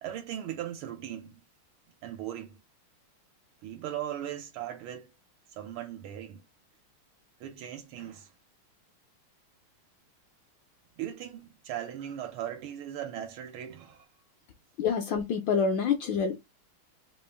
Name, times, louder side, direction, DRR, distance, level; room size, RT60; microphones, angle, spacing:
voice 1, 0.0-1.4 2.0-2.6 3.6-5.1 5.5-6.4 7.4-8.3 11.0-14.1, right 11 dB, 80° right, 1.5 m, -38 dB
voice 2, 14.8-16.4, left 6 dB, 75° left, 1.2 m, -27 dB
3.6 x 2.5 x 3.4 m
omnidirectional pair, 2.4 m